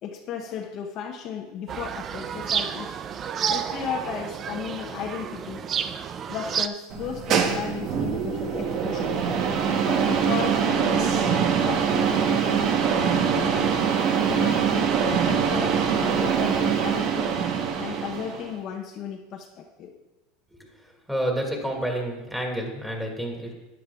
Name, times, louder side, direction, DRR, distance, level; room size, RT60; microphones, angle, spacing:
voice 1, 0.0-2.9 3.5-5.7 6.2-9.2 9.6-13.7 14.2-17.3 17.8-20.0, left 7 dB, 50° left, 2 dB, 0.8 m, -35 dB
sound 1, 1.7-6.7, right 8 dB, 35° right, 0.5 m, -30 dB
sound 2, 6.9-18.5, right 7 dB, 50° right, 1.1 m, -23 dB
voice 2, 21.1-23.5, right 1 dB, 5° right, 0 dB, 2.2 m, -29 dB
12.5 x 9.7 x 2.4 m, 1.1 s
supercardioid pair, 120°, 0 cm